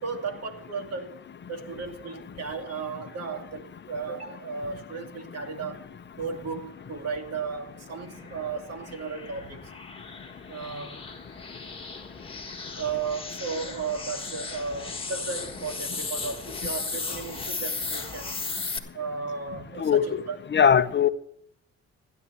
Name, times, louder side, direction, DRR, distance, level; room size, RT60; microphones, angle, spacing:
voice 1, 0.0-5.9 6.1-9.7 10.5-11.0 12.8-18.4 18.9-20.4, right 5 dB, 55° right, 2.4 m, -35 dB
sound 1, 7.2-18.8, left 3 dB, 20° left, 1.6 m, -36 dB
voice 2, 19.8-20.2 20.5-21.1, left 7 dB, 35° left, 0.8 m, -20 dB
16.0 x 10.5 x 3.3 m
cardioid pair, 90°, 30 cm